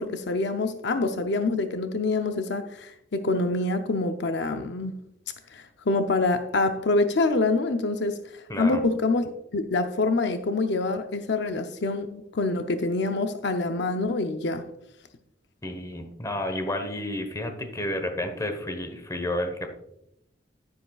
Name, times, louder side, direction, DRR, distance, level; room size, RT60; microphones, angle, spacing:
voice 1, 0.0-4.9 5.5-8.2 8.6-9.2 9.5-14.6, left 3 dB, 65° left, 7 dB, 0.6 m, -26 dB
voice 2, 8.5-8.8 15.6-19.7, left 1 dB, 20° left, 6 dB, 1.1 m, -31 dB
10.5 x 9.9 x 2.3 m, 0.81 s
head